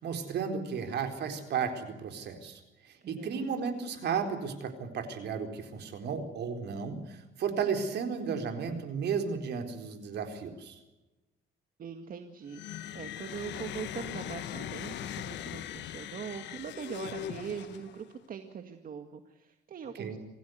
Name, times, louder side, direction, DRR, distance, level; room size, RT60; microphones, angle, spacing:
voice 1, 0.0-10.8 20.0-20.2, right 6 dB, 70° right, 6 dB, 4.2 m, -34 dB
voice 2, 3.0-3.5 11.8-20.2, right 7 dB, 50° right, 6 dB, 2.0 m, -42 dB
sound 1, 12.5-18.1, left 11 dB, 90° left, 1.5 m, -40 dB
27.0 x 16.5 x 8.0 m, 1.1 s
cardioid pair, 110°, 18 cm